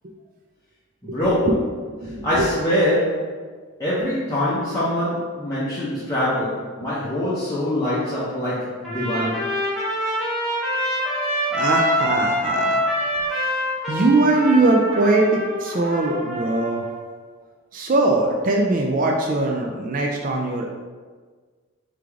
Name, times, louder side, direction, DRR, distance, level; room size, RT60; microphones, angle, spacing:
voice 1, 1.0-1.7 2.2-3.4 3.8-9.4, left 1 dB, 15° left, -11 dB, 0.6 m, -24 dB
voice 2, 2.0-2.5 11.5-12.8 13.4-13.5 13.9-16.9 17.7-20.7, right 2 dB, 40° right, 1 dB, 0.3 m, -21 dB
Trumpet, 8.8-17.0, equal, ahead, 1.0 m, -25 dB
3.7 x 3.3 x 3.4 m, 1.5 s
head